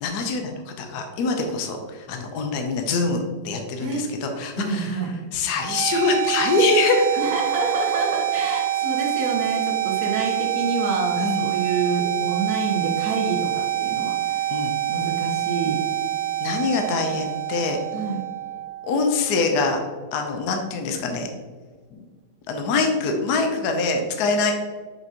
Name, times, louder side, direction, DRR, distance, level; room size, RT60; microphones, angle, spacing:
voice 1, 0.0-5.0 5.3-7.1 11.2-11.4 14.5-14.7 16.4-17.8 18.8-19.8 20.1-21.3 21.9-22.1 22.5-24.5, left 3 dB, 65° left, 4 dB, 1.2 m, -24 dB
voice 2, 4.6-5.1 7.2-14.5 14.9-15.8 17.9-18.2, right 3 dB, 55° right, 0 dB, 1.5 m, -27 dB
sound 1, 5.6-19.5, right 13 dB, 75° right, 0.8 m, -26 dB
6.0 x 6.0 x 2.9 m, 1.5 s
omnidirectional pair, 2.0 m